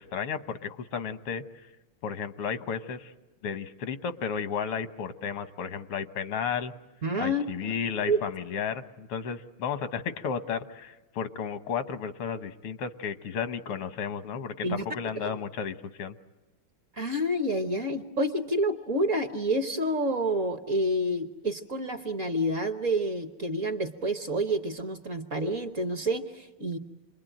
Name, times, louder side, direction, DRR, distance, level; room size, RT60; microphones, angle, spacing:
voice 1, 0.0-1.4 2.0-3.1 3.4-6.7 7.2-16.2, left 6 dB, 85° left, 10 dB, 2.0 m, -33 dB
voice 2, 7.0-7.7 8.1-8.2 14.6-14.8 16.9-26.8, right 1 dB, 45° right, 7 dB, 1.2 m, -28 dB
28.0 x 22.0 x 9.1 m, 1.1 s
omnidirectional pair, 2.4 m